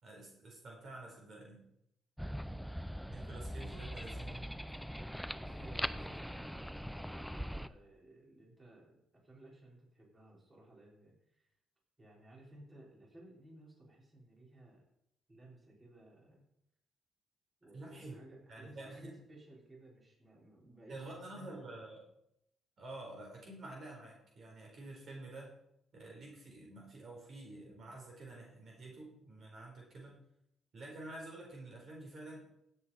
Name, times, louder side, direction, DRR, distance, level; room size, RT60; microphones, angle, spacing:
voice 1, 0.0-1.6 3.1-4.4 17.7-18.2 18.5-19.1 20.9-22.0 22.8-25.6 25.9-30.2 30.7-32.6, right 2 dB, 55° right, -1 dB, 4.2 m, -49 dB
sound 1, 2.2-7.7, equal, ahead, 0.5 m, -41 dB
voice 2, 5.4-11.6 12.0-14.9 15.3-16.4 17.6-21.6, right 1 dB, 25° right, -3 dB, 4.5 m, -57 dB
16.0 x 8.1 x 4.3 m, 0.78 s
cardioid pair, 90°, 0 cm